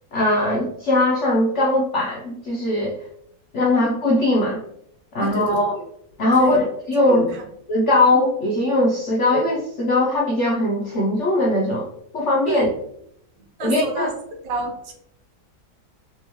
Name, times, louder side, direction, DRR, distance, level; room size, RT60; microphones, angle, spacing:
voice 1, 0.1-3.0 3.5-4.6 5.1-5.7 6.2-7.3 7.7-11.9 12.1-12.7 13.6-14.1, left 1 dB, 70° left, -2 dB, 0.6 m, -20 dB
voice 2, 5.2-5.7 6.4-6.7 7.1-7.5 12.5-12.7 13.3-14.1 14.4-14.9, right 2 dB, 80° right, 3 dB, 1.4 m, -29 dB
3.4 x 3.3 x 3.0 m, 0.73 s
omnidirectional pair, 1.9 m